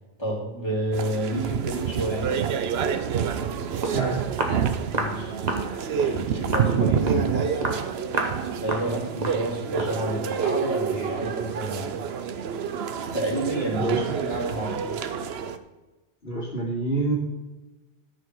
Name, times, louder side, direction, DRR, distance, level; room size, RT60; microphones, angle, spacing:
voice 1, 0.2-2.5 4.9-5.3 6.0-7.8 8.6-12.0 13.1-14.9, right 1 dB, 25° left, -5 dB, 3.0 m, -30 dB
sound 1, 0.9-15.6, right 7 dB, 70° right, 0.9 m, -28 dB
Walk footsteps, 3.5-3.6 3.8-4.0 4.4-4.6 4.9-5.2 5.5-5.7 6.0-6.2 6.5-6.7 7.1-7.3 7.6-7.8 8.1-8.4 8.7-8.9 9.2-9.4 9.8-10.0, right 2 dB, 40° right, 1.4 m, -28 dB
voice 2, 16.2-17.1, right 2 dB, 60° left, -5 dB, 3.0 m, -26 dB
13.0 x 5.3 x 6.2 m, 1.1 s
omnidirectional pair, 1.1 m